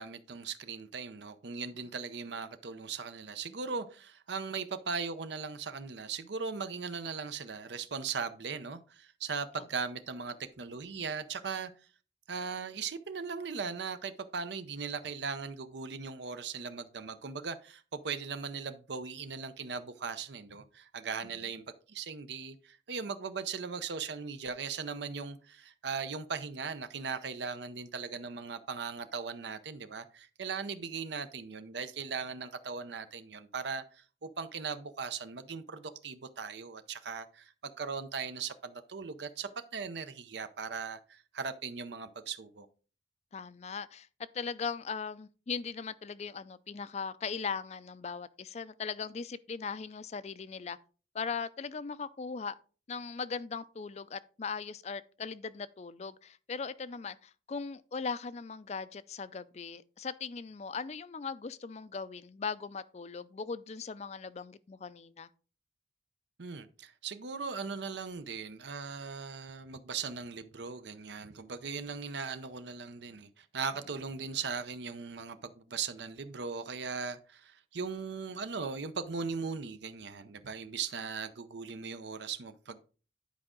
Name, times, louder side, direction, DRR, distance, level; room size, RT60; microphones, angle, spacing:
voice 1, 0.0-11.7 12.3-42.7 66.4-82.8, right 5 dB, 70° right, 0.6 m, -39 dB
voice 2, 43.3-44.1 44.3-50.8 51.1-52.6 52.9-65.3, left 5 dB, 35° left, 0.4 m, -39 dB
10.5 x 4.9 x 3.7 m
head